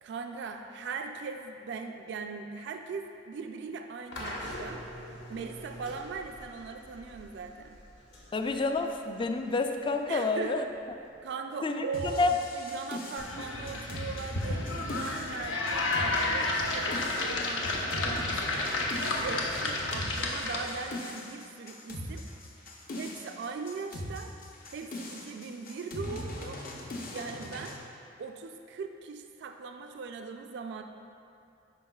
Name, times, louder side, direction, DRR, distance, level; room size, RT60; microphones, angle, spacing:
voice 1, 0.0-4.9 5.3-7.8 10.1-10.7 11.2-12.3 12.5-18.8 19.1-22.2 22.9-24.4 24.7-26.6 27.1-27.8 28.2-30.8, right 4 dB, 65° right, 5 dB, 0.3 m, -40 dB
sound 1, 4.1-11.2, left 1 dB, 65° left, 1.2 m, -45 dB
voice 2, 8.3-10.6 11.6-11.9 12.2-12.3, left 3 dB, 25° left, 5 dB, 0.3 m, -28 dB
sound 2, 11.9-27.8, left 1 dB, 50° left, 0.7 m, -40 dB
sound 3, 13.2-20.9, left 2 dB, 90° left, 0.8 m, -31 dB
9.8 x 5.4 x 2.3 m, 2.6 s
head